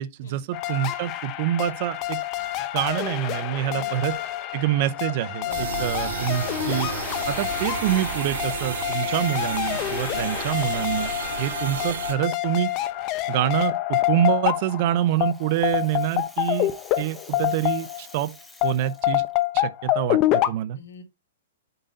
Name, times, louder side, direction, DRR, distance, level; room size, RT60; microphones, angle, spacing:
voice 1, 0.0-2.2 2.7-4.1 4.5-6.9 7.3-11.1 11.4-12.7 13.3-16.7 17.0-18.3 18.6-19.2 19.5-20.8, right 12 dB, 45° right, 0.6 m, -26 dB
sound 1, 0.5-18.2 18.6-20.5, left 15 dB, 30° left, 0.7 m, -27 dB
voice 2, 5.4-5.9 10.1-10.3 20.7-21.0, left 4 dB, 85° left, 2.2 m, -43 dB
sound 2, 5.5-12.1, right 7 dB, 75° right, 1.6 m, -32 dB
Rattle (instrument), 14.7-19.4, left 2 dB, 5° left, 1.1 m, -49 dB
7.9 x 3.9 x 4.0 m
hypercardioid pair, 150°, 0 cm